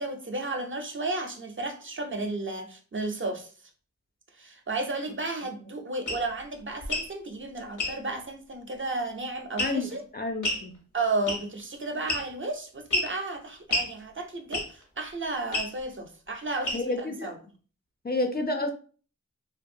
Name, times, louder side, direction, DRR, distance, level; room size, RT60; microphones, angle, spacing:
voice 1, 0.0-3.5 4.4-10.0 10.9-17.4, right 2 dB, 40° right, 4 dB, 0.5 m, -33 dB
sound 1, 6.1-6.2 6.8-7.1 7.8-8.0 9.6-9.9 10.4-10.6 11.3-11.6 12.1-12.4 12.9-13.1 13.7-13.9 14.5-14.8 15.5-15.7 16.6-17.0, left 1 dB, 70° left, 0.8 m, -29 dB
voice 2, 9.6-10.7 16.7-17.3 18.0-18.7, left 2 dB, 30° left, 4 dB, 0.4 m, -30 dB
2.5 x 2.2 x 2.6 m, 0.39 s
wide cardioid pair, 55°, 31 cm